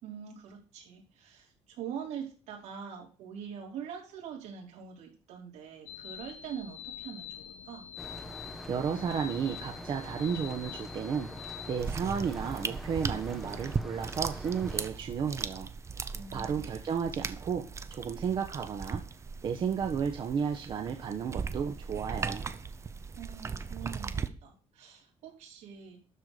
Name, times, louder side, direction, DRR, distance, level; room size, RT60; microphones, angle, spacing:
voice 1, 0.0-7.9 16.1-16.8 23.2-26.0, right 8 dB, 80° right, -1 dB, 4.9 m, -44 dB
sound 1, 5.9-11.8, left 10 dB, 75° left, 0.9 m, -45 dB
sound 2, 8.0-14.9, equal, ahead, 1.4 m, -44 dB
voice 2, 8.7-15.7 16.3-17.6 17.9-19.0 19.4-22.5, right 7 dB, 45° right, 4 dB, 1.2 m, -33 dB
sound 3, 11.8-24.3, right 5 dB, 25° right, 0.8 m, -38 dB
12.5 x 4.7 x 6.7 m, 0.38 s
cardioid pair, 140°, 11 cm